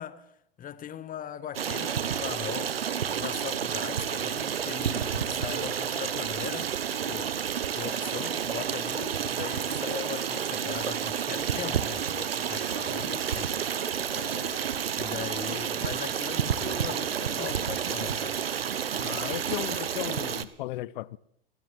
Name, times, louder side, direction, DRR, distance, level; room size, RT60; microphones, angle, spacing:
voice 1, 0.0-13.6 14.9-18.4, left 9 dB, 30° left, 1.9 m, -40 dB
Stream, 1.5-20.4, right 8 dB, 85° right, 1.6 m, -30 dB
voice 2, 14.0-14.6 15.5-15.6 18.9-21.2, left 17 dB, 60° left, 1.0 m, -37 dB
26.5 x 19.0 x 7.8 m
hypercardioid pair, 100°, 29 cm